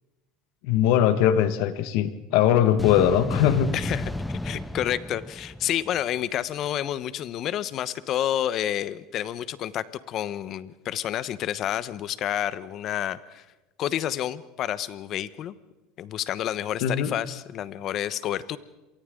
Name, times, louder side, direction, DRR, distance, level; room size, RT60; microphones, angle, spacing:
voice 1, 0.6-3.7 16.8-17.1, left 10 dB, 70° left, 10 dB, 1.7 m, -21 dB
sound 1, 2.8-6.2, left 1 dB, 5° left, 0.8 m, -32 dB
voice 2, 3.7-4.1 4.4-13.4 13.8-15.5 16.0-18.6, left 11 dB, 45° left, 15 dB, 1.1 m, -29 dB
29.0 x 23.5 x 3.9 m, 1.1 s
supercardioid pair, 125°, 0 cm